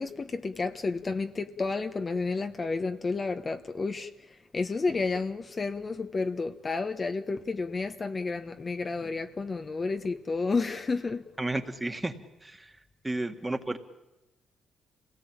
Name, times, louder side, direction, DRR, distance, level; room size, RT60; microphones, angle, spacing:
voice 1, 0.0-4.1 4.5-11.2, left 4 dB, 35° left, 1.1 m, -31 dB
voice 2, 11.4-12.1 12.4-12.7 13.0-13.8, right 2 dB, 15° right, 1.8 m, -32 dB
27.0 x 18.0 x 8.8 m
cardioid pair, 90°, 0 cm